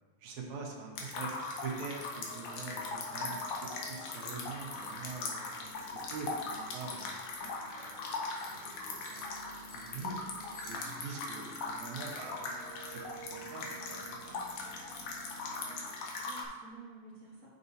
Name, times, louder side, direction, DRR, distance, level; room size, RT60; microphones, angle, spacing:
voice 1, 0.2-1.3 1.6-7.2 7.8-8.1 8.4-9.2 9.7-10.1 10.5-12.5 12.8-14.4, right 4 dB, 75° right, 0 dB, 2.4 m, -44 dB
sound 1, 1.0-16.4, left 3 dB, 85° left, 2.5 m, -40 dB
sound 2, 2.1-15.8, right 1 dB, 60° left, 2.9 m, -53 dB
sound 3, 8.4-11.4, right 2 dB, 35° left, 1.3 m, -57 dB
voice 2, 9.9-10.8 15.5-17.6, right 2 dB, 35° right, -8 dB, 1.5 m, -54 dB
9.0 x 6.8 x 2.7 m, 1.5 s
omnidirectional pair, 3.4 m